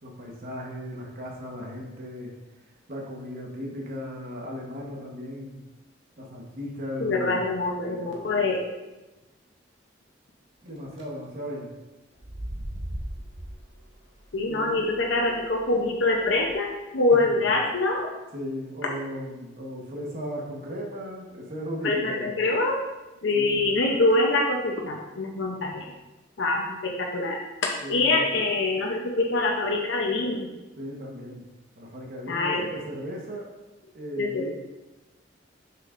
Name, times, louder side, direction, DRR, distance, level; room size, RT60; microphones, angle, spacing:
voice 1, 0.0-2.3 2.9-5.6 6.2-7.5 7.9-8.5 10.6-11.7 14.5-14.8 17.1-17.5 18.3-22.3 23.3-23.7 27.8-28.3 30.8-31.4 31.8-33.5 33.9-34.5, equal, 50° right, -2 dB, 1.2 m, -36 dB
voice 2, 7.0-8.6 14.3-18.1 21.8-22.8 23.2-25.8 26.4-27.4 27.9-30.5 32.3-32.7 34.2-34.5, left 2 dB, 85° left, 0 dB, 0.7 m, -25 dB
sound 1, 10.7-11.0 12.1-16.5, right 1 dB, 90° right, 1.3 m, -40 dB
6.6 x 5.9 x 2.5 m, 1.1 s
head